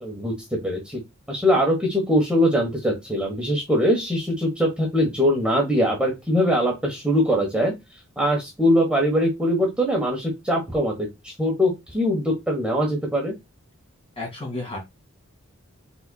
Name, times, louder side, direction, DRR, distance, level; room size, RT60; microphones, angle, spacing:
voice 1, 0.0-0.3 0.6-1.0 1.3-7.7 8.2-13.3, equal, 5° right, -1 dB, 1.2 m, -22 dB
voice 2, 14.2-14.8, left 2 dB, 30° left, 0 dB, 2.3 m, -31 dB
5.4 x 3.9 x 2.3 m, 0.21 s
head